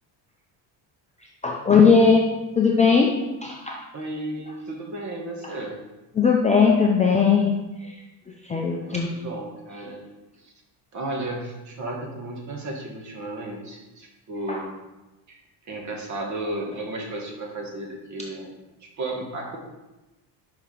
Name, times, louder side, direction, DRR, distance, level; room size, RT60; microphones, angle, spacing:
voice 1, 1.4-2.3 2.6-3.8 6.2-7.5 7.8-7.9 8.4-9.1 14.5-14.6, left 5 dB, 20° left, -1 dB, 0.3 m, -19 dB
voice 2, 3.9-5.8 8.7-10.0 10.9-14.7 15.3-15.4 15.6-18.5 19.0-19.6, right 2 dB, 40° right, 0 dB, 1.4 m, -33 dB
5.7 x 4.8 x 5.2 m, 1.0 s
cardioid pair, 170°, 44 cm